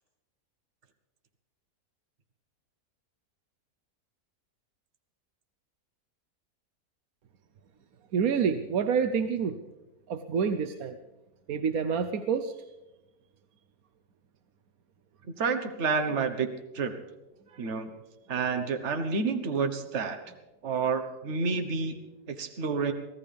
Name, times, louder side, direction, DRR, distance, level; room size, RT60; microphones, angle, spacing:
voice 1, 8.1-9.6 10.1-11.0 11.5-12.5 17.5-17.6, right 6 dB, 70° right, 8 dB, 1.2 m, -27 dB
voice 2, 15.4-16.5 16.7-16.9 17.6-17.9 18.3-20.2 20.6-22.9, right 5 dB, 50° right, 7 dB, 1.5 m, -29 dB
24.0 x 15.5 x 3.5 m, 1.0 s
omnidirectional pair, 1.7 m